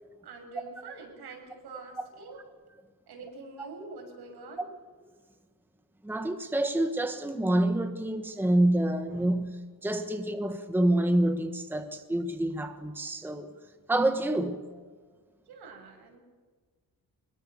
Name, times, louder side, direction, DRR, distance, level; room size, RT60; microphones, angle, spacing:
voice 1, 0.2-2.4 3.1-4.7 15.5-16.2, right 3 dB, 75° right, 7.1 m, -45 dB
voice 2, 6.0-13.5 13.9-14.6, right 1 dB, 5° right, 1.2 m, -27 dB
24.0 x 22.0 x 6.8 m
wide cardioid pair, 165°, 38 cm